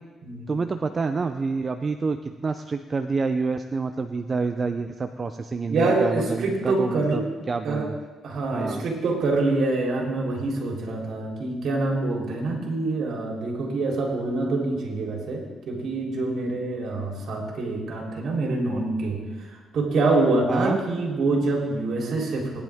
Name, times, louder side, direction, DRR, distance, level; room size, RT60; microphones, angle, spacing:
voice 1, 0.5-2.2 2.4-7.2 7.5-7.9 8.5-8.8 20.5-20.8, right 4 dB, 35° right, 8 dB, 0.6 m, -27 dB
voice 2, 5.7-7.2 7.6-7.9 8.2-22.6, right 2 dB, 65° right, -1 dB, 3.6 m, -25 dB
19.5 x 10.5 x 3.6 m, 1.3 s
cardioid pair, 90°, 0 cm